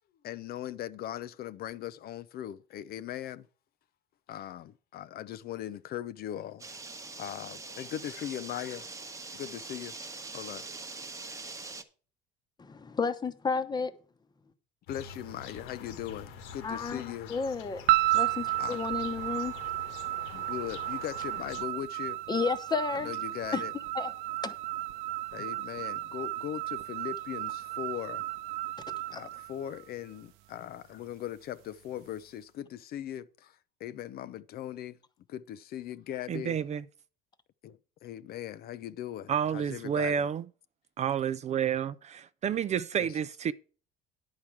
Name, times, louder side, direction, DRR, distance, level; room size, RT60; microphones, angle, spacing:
voice 1, 0.2-3.5 4.3-6.9 7.2-8.9 9.3-9.9 10.3-10.7 14.9-17.3 18.6-18.9 20.3-22.2 22.9-23.7 25.3-28.3 29.1-35.0 35.3-36.6 37.6-40.3 43.0-43.2, left 11 dB, 50° left, 0.5 m, -39 dB
sound 1, 6.6-11.8, right 3 dB, 15° right, 1.0 m, -43 dB
voice 2, 12.6-13.9 16.6-17.0 17.3-17.8 18.1-19.5 22.3-23.1 23.5-23.6 23.9-24.1 24.4-24.5 29.1-29.2, left 5 dB, 20° left, 0.9 m, -31 dB
sound 2, 14.9-21.6, left 6 dB, 70° left, 1.5 m, -46 dB
sound 3, 17.9-30.2, right 18 dB, 80° right, 0.7 m, -33 dB
voice 3, 36.3-36.8 39.3-40.4 41.0-43.5, right 8 dB, 35° right, 0.5 m, -30 dB
10.5 x 4.8 x 7.2 m
cardioid pair, 125°, 20 cm